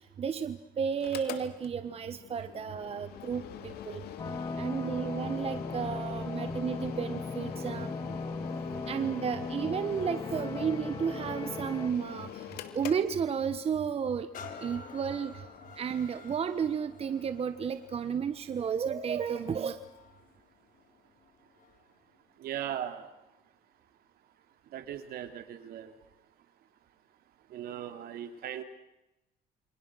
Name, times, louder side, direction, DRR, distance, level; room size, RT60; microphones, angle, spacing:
voice 1, 0.0-4.0 4.6-7.9 8.9-12.4 12.7-14.3 14.6-15.4 15.8-19.8, right 7 dB, 40° right, 11 dB, 1.3 m, -32 dB
Mechanical fan, 0.9-13.8, left 11 dB, 80° left, 2.5 m, -44 dB
sound 1, 4.2-11.9, left 3 dB, 25° left, 2.2 m, -37 dB
sound 2, 14.3-21.9 22.5-22.6, left 5 dB, 60° left, 3.8 m, -51 dB
voice 2, 22.4-23.1 24.7-25.9 27.5-28.6, right 10 dB, 70° right, 8 dB, 3.1 m, -38 dB
29.0 x 25.0 x 6.4 m, 0.90 s
cardioid pair, 120°, 16 cm